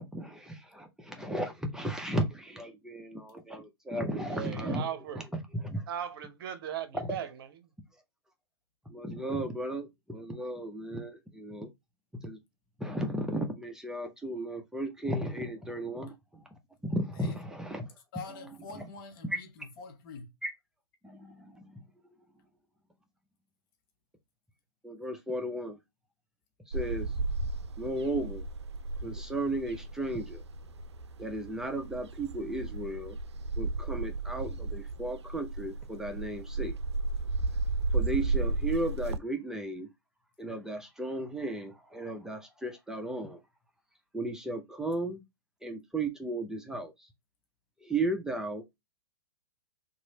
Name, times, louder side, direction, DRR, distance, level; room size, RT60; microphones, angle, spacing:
voice 1, 0.0-5.2 5.5-5.8 7.1-7.2 8.9-11.7 12.2-12.4 12.8-16.5 16.8-17.9 20.4-20.5 21.0-21.8 24.8-25.8 26.7-27.1 27.8-28.4 29.0-30.4 31.2-33.2 33.6-36.7 37.9-39.9 40.4-43.4 44.1-45.2 45.6-47.1 47.8-48.8, right 1 dB, 5° right, 0.5 m, -35 dB
voice 2, 4.3-5.2 5.9-7.7, right 9 dB, 55° right, 0.7 m, -38 dB
voice 3, 18.1-20.3, left 4 dB, 50° left, 0.8 m, -45 dB
sound 1, 26.7-39.2, right 3 dB, 80° right, 0.4 m, -34 dB
3.0 x 2.6 x 4.0 m
hypercardioid pair, 110°, 14 cm